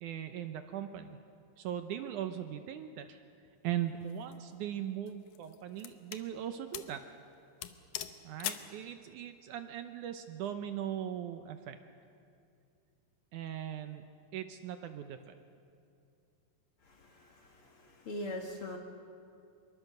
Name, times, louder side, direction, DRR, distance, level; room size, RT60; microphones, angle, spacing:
voice 1, 0.0-1.2 1.6-3.2 3.6-7.0 8.2-11.8 13.3-14.1 14.3-15.4, right 10 dB, 75° right, 8 dB, 2.1 m, -39 dB
sound 1, 4.0-4.3 5.1-6.3 6.7-7.0 7.3-7.4 7.6-8.7, left 11 dB, 70° left, 2.1 m, -41 dB
voice 2, 16.8-18.8, left 1 dB, 50° left, 2 dB, 2.0 m, -42 dB
24.5 x 22.5 x 6.7 m, 2.5 s
omnidirectional pair, 4.0 m